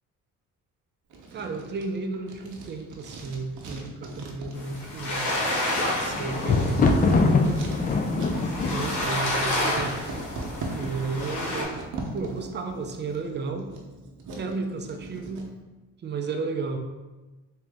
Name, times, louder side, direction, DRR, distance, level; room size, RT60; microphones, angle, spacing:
Writing, 1.1-15.5, right 2 dB, 65° right, 0.8 m, -40 dB
voice 1, 1.3-5.2 6.0-7.4 8.7-10.0 10.7-11.8 12.1-13.7 14.4-15.5 16.0-16.8, right 4 dB, 35° right, 5 dB, 0.5 m, -33 dB
sound 1, 4.5-11.6, left 1 dB, 60° left, 1.2 m, -30 dB
Thunder, 5.4-10.6 11.3-11.8 12.1-12.2, left 3 dB, 25° left, 0.3 m, -24 dB
3.6 x 2.8 x 3.4 m, 1.2 s
cardioid pair, 95°, 33 cm